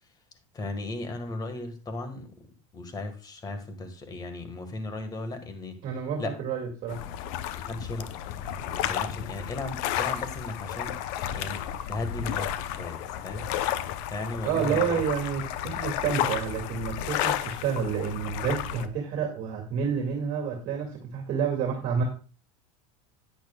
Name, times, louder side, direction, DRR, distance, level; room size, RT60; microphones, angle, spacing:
voice 1, 0.5-2.3 2.7-5.8 6.2-6.3 7.6-11.0 11.3-11.6 11.9-13.5 14.1-15.0, left 2 dB, 25° left, 7 dB, 1.6 m, -36 dB
voice 2, 5.8-7.0 14.4-22.0, right 7 dB, 50° right, 1 dB, 2.0 m, -29 dB
sound 1, 6.9-18.9, left 11 dB, 65° left, 0.8 m, -32 dB
10.0 x 9.3 x 2.3 m, 0.36 s
supercardioid pair, 125°, 16 cm